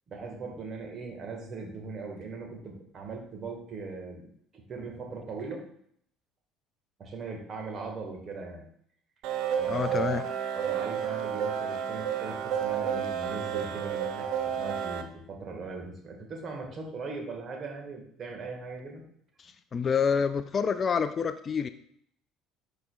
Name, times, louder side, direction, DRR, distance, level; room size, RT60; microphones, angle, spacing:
voice 1, 0.1-5.7 7.0-8.6 9.6-10.2 10.5-19.0, right 4 dB, 40° right, 2 dB, 1.7 m, -39 dB
sound 1, 9.2-15.0, right 8 dB, 55° right, 0.7 m, -31 dB
voice 2, 9.7-10.2 19.4-21.7, left 6 dB, 35° left, 11 dB, 0.4 m, -28 dB
10.5 x 5.0 x 2.4 m, 0.67 s
figure-of-eight pair, 60°, 0 cm